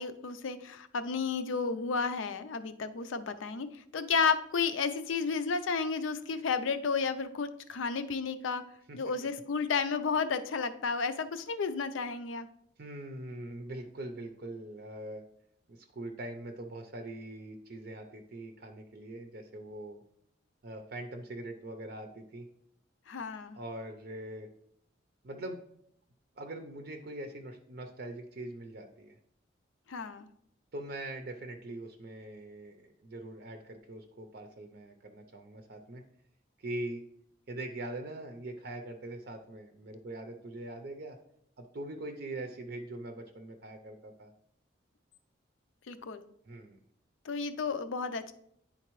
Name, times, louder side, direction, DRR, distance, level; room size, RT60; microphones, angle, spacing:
voice 1, 0.0-8.6 8.9-12.5 23.1-23.6 29.9-30.3 45.9-46.2 47.2-48.3, left 5 dB, 80° left, 10 dB, 0.5 m, -32 dB
voice 2, 12.8-15.2 15.7-20.0 20.6-22.5 23.5-24.5 25.2-25.6 26.4-29.2 30.7-36.0 36.6-37.0 37.5-41.2 41.6-44.3 46.4-46.8, right 1 dB, 50° right, 5 dB, 0.5 m, -42 dB
10.0 x 3.8 x 3.0 m, 0.72 s
head